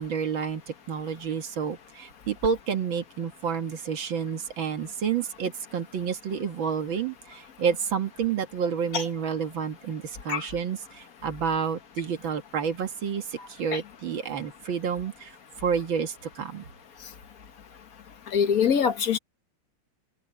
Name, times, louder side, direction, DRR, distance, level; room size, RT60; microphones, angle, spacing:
voice 1, 0.0-16.7, right 7 dB, 65° right, 2.3 m, -30 dB
voice 2, 18.3-19.2, left 7 dB, 45° left, 1.6 m, -23 dB
open air
omnidirectional pair, 2.4 m